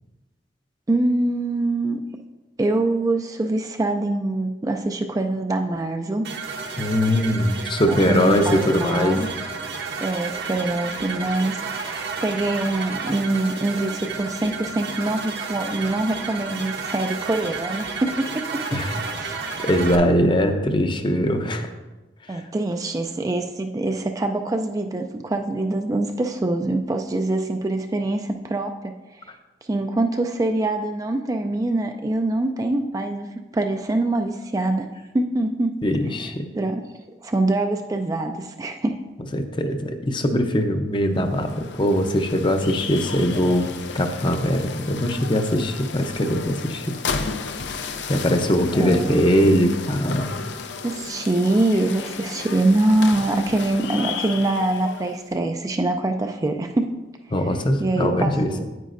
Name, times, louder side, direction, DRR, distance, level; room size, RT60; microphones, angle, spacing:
voice 1, 0.9-2.0 2.6-6.3 7.9-9.3 10.0-18.8 19.1-19.5 22.3-29.2 29.7-33.3 33.5-34.9 35.1-35.8 36.2-36.3 36.5-39.0 48.8-49.3 50.8-56.9 57.8-58.6, right 2 dB, 20° right, 5 dB, 0.3 m, -24 dB
sound 1, 6.2-20.0, right 4 dB, 65° right, 1.0 m, -31 dB
voice 2, 6.8-9.3 18.7-19.0 19.3-21.7 22.3-22.4 35.8-36.5 39.3-43.7 43.9-47.0 48.1-50.3 57.3-58.6, equal, 25° left, 6 dB, 0.6 m, -21 dB
sound 2, 41.2-55.3, left 5 dB, 75° left, 0.5 m, -34 dB
9.2 x 9.1 x 2.5 m, 1.1 s
head